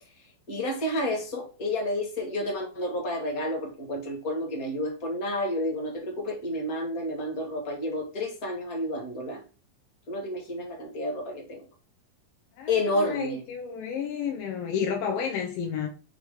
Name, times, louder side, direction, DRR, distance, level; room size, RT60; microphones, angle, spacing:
voice 1, 0.5-9.4 10.1-11.6 12.7-13.4, left 1 dB, 40° left, 1.4 m, -30 dB
voice 2, 12.6-15.9, left 7 dB, 85° left, 2.6 m, -31 dB
6.1 x 3.2 x 4.9 m
omnidirectional pair, 3.9 m